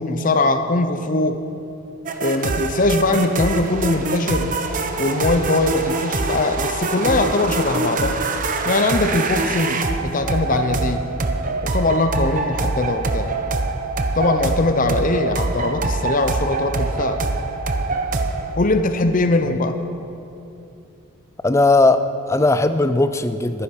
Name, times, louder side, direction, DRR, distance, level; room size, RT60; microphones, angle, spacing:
voice 1, 0.0-1.4 2.2-4.5 5.0-8.2 8.6-11.1 11.6-13.3 14.2-17.2 18.6-19.8, left 2 dB, 35° left, 8 dB, 0.7 m, -21 dB
sound 1, 2.1-18.5, right 3 dB, 40° right, 0.8 m, -24 dB
voice 2, 21.4-23.6, left 2 dB, 15° left, 11 dB, 0.4 m, -17 dB
12.5 x 10.0 x 6.0 m, 2.7 s
head